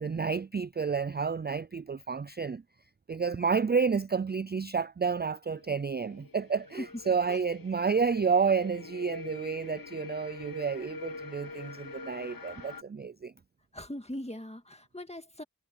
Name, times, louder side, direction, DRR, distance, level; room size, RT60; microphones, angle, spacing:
voice 1, 0.0-2.6 3.1-13.3, right 5 dB, 30° right, 0.4 m, -30 dB
sound 1, 5.5-12.8, left 3 dB, 65° left, 1.0 m, -45 dB
voice 2, 13.7-15.4, left 1 dB, 15° left, 2.0 m, -41 dB
wide cardioid pair, 45°, 37 cm